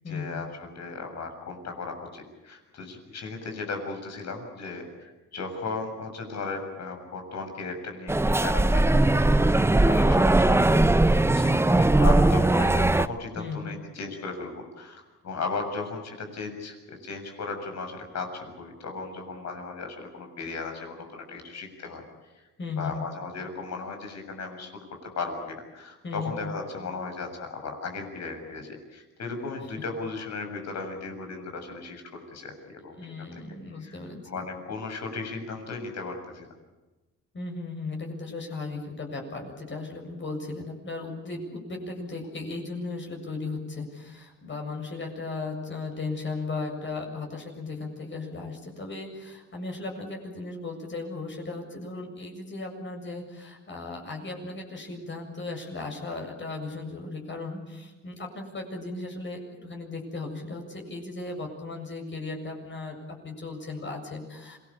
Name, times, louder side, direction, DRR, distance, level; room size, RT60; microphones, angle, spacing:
voice 1, 0.1-22.0 22.3-22.5 22.8-24.7 25.0-32.0 32.3-32.5 32.8-33.3 33.8-34.0 34.3-36.5, left 4 dB, 60° left, 4 dB, 7.3 m, -36 dB
sound 1, 8.1-13.1, right 2 dB, 10° right, 0.7 m, -20 dB
voice 2, 22.6-22.9 26.0-26.3 32.9-34.5 37.3-64.6, left 3 dB, 40° left, 2 dB, 7.3 m, -36 dB
26.5 x 19.5 x 8.7 m, 1.1 s
cardioid pair, 90°, 30 cm